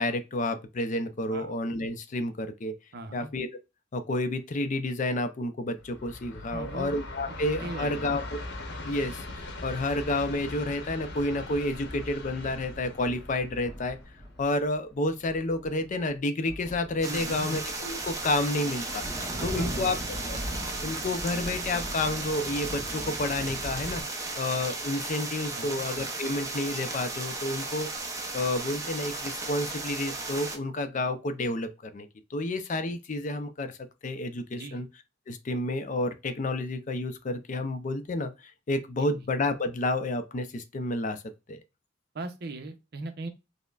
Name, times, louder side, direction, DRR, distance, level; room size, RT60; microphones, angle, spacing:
voice 1, 0.0-2.7 3.1-3.5 3.9-8.3 8.8-14.0 14.4-19.0 19.4-20.4 20.8-24.0 24.4-27.9 28.3-33.8 34.0-34.9 35.3-41.2 41.5-41.6, left 2 dB, 40° left, 0.5 m, -30 dB
voice 2, 2.9-3.3 6.5-6.9 7.6-8.1 17.0-17.5 19.3-20.2 25.5-25.8 34.5-34.8 39.1-39.2 42.1-43.3, right 2 dB, 60° right, 0.7 m, -39 dB
Train, 5.8-15.0, left 2 dB, 65° left, 0.9 m, -41 dB
sound 1, 13.6-14.4 15.1-16.2 16.4-24.0, equal, ahead, 0.9 m, -40 dB
sound 2, 17.0-30.6, right 3 dB, 20° right, 0.6 m, -35 dB
5.2 x 2.1 x 2.4 m
head